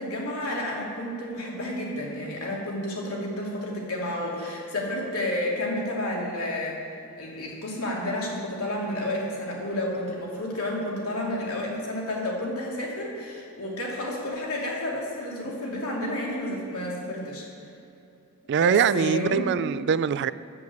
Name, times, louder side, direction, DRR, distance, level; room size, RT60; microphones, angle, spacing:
voice 1, 0.0-6.8 7.1-17.4 18.6-19.5, left 1 dB, 75° left, -3 dB, 2.7 m, -31 dB
voice 2, 18.5-20.3, right 7 dB, 50° right, 15 dB, 0.3 m, -23 dB
10.5 x 8.0 x 8.3 m, 2.7 s
head